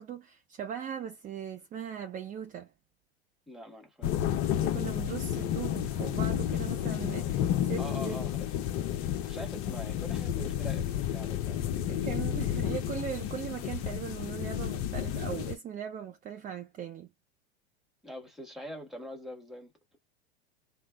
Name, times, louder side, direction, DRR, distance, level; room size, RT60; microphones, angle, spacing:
voice 1, 0.0-2.7 4.6-8.3 11.9-17.1, right 8 dB, 25° right, 0.6 m, -39 dB
voice 2, 3.5-4.2 7.8-8.5 9.2-12.0 12.5-12.8 18.0-20.0, equal, ahead, 1.3 m, -44 dB
sound 1, 4.0-15.6, left 10 dB, 45° left, 0.7 m, -31 dB
3.3 x 2.0 x 3.5 m
hypercardioid pair, 90°, 32 cm